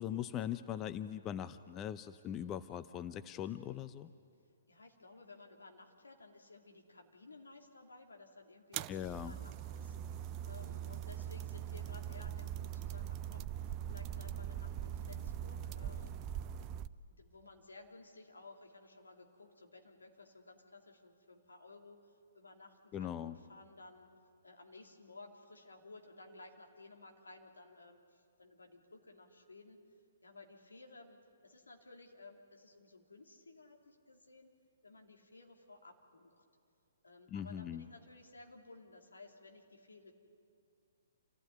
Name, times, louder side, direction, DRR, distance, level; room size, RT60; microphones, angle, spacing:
voice 1, 0.0-4.1 8.9-9.4 22.9-23.4 37.3-37.8, left 10 dB, 25° left, 12 dB, 0.6 m, -40 dB
voice 2, 4.7-16.2 17.1-24.1 24.4-29.8 30.2-34.5 34.8-36.4 37.0-40.1, left 3 dB, 80° left, 2 dB, 2.9 m, -56 dB
sound 1, 8.7-16.9, right 10 dB, 30° right, 0.6 m, -42 dB
27.5 x 15.5 x 9.4 m, 2.4 s
figure-of-eight pair, 125°, 0 cm